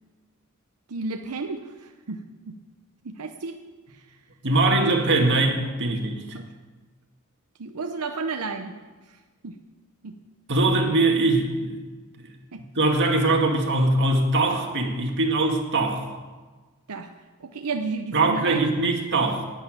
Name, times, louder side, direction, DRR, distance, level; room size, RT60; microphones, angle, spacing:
voice 1, 0.9-2.2 2.5-2.6 3.0-3.6 3.9-4.0 5.9-6.0 6.3-6.5 7.6-8.7 9.4-9.6 10.0-10.1 12.5-12.6 16.9-17.1 17.4-18.7, right 4 dB, 90° right, 5 dB, 0.8 m, -32 dB
voice 2, 4.4-6.4 10.5-11.8 12.2-12.3 12.8-16.1 18.1-19.5, right 2 dB, 55° right, 2 dB, 2.0 m, -22 dB
11.5 x 9.3 x 9.1 m, 1.3 s
head